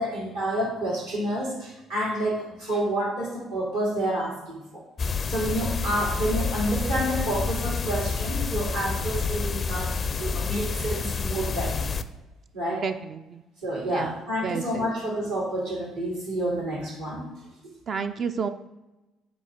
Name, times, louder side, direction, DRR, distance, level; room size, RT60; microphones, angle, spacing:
voice 1, 0.0-4.8 5.3-11.9 12.5-12.8 13.6-17.2, right 1 dB, 85° right, -6 dB, 2.3 m, -29 dB
sound 1, 5.0-12.0, left 5 dB, 40° left, 0.4 m, -28 dB
voice 2, 12.7-13.4 13.9-14.1 14.4-14.9 17.9-18.5, right 6 dB, 45° right, 7 dB, 0.4 m, -30 dB
8.2 x 4.2 x 3.7 m, 1.0 s
figure-of-eight pair, 50°, 0 cm